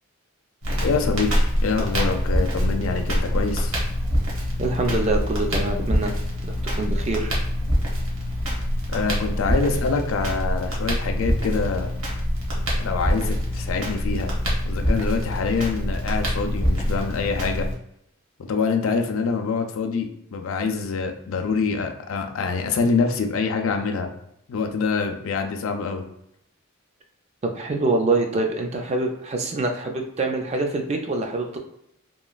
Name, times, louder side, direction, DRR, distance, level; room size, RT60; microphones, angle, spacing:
Crackle, 0.6-17.7, equal, 65° right, 0.9 m, -25 dB
voice 1, 0.8-3.7 8.9-11.9 12.8-14.3 14.6-17.7 18.5-24.1 24.5-26.0, left 4 dB, 65° left, 5 dB, 0.4 m, -25 dB
voice 2, 4.6-6.1 6.4-7.3 27.4-31.6, right 2 dB, 30° right, 3 dB, 0.3 m, -25 dB
3.0 x 2.2 x 2.3 m, 0.77 s
head